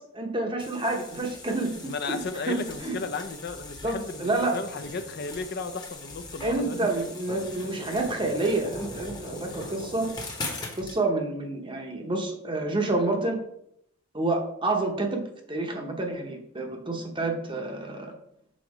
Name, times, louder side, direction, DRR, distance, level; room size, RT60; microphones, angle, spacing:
voice 1, 0.1-1.7 2.1-3.0 3.8-4.5 6.4-10.1 10.8-13.4 14.1-15.2 15.5-18.1, right 2 dB, 20° right, 2 dB, 0.8 m, -28 dB
sound 1, 0.6-11.0, left 2 dB, 20° left, 1.0 m, -40 dB
voice 2, 1.8-6.8, left 4 dB, 45° left, 9 dB, 0.5 m, -34 dB
6.4 x 3.9 x 4.8 m, 0.74 s
head